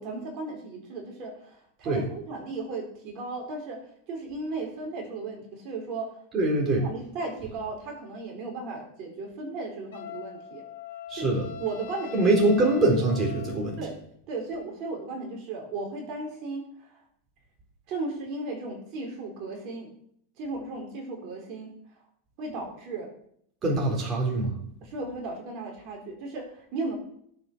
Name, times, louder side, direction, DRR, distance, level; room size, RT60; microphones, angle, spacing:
voice 1, 0.0-3.8 4.1-6.2 6.8-10.6 11.1-11.3 11.6-12.2 13.8-13.9 14.3-17.0 17.9-19.9 20.4-21.7 22.4-23.1 24.8-26.9, right 3 dB, 40° right, 1 dB, 4.2 m, -35 dB
voice 2, 6.3-6.8 11.1-11.5 12.1-13.8 23.6-24.6, right 2 dB, 25° right, -1 dB, 4.2 m, -23 dB
Wind instrument woodwind instrument, 9.9-13.9, left 9 dB, 80° left, 1.6 m, -41 dB
16.0 x 7.9 x 6.3 m, 0.69 s
supercardioid pair, 150°, 0 cm